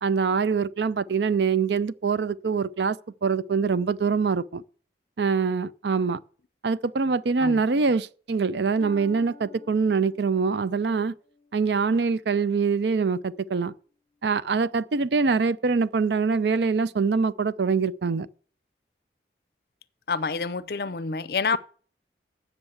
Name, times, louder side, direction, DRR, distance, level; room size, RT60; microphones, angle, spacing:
voice 1, 0.0-3.0 3.2-4.6 5.2-6.2 6.6-11.1 11.5-13.7 14.2-18.3, right 5 dB, 75° right, 0.5 m, -24 dB
Harp, 8.8-12.5 13.1-13.5 14.1-14.2, left 2 dB, 30° left, 0.9 m, -49 dB
voice 2, 20.1-21.6, left 5 dB, 60° left, 0.6 m, -27 dB
8.0 x 7.2 x 7.8 m
head